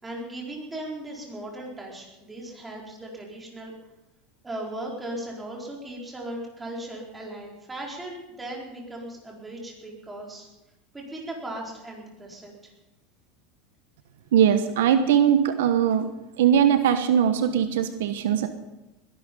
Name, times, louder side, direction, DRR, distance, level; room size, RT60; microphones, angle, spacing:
voice 1, 0.0-3.7 4.4-10.5 10.9-12.7, right 1 dB, 10° right, -1 dB, 4.5 m, -37 dB
voice 2, 14.3-16.1 16.4-18.5, right 9 dB, 85° right, 9 dB, 1.2 m, -20 dB
20.5 x 11.5 x 5.4 m, 0.97 s
supercardioid pair, 130°, 0 cm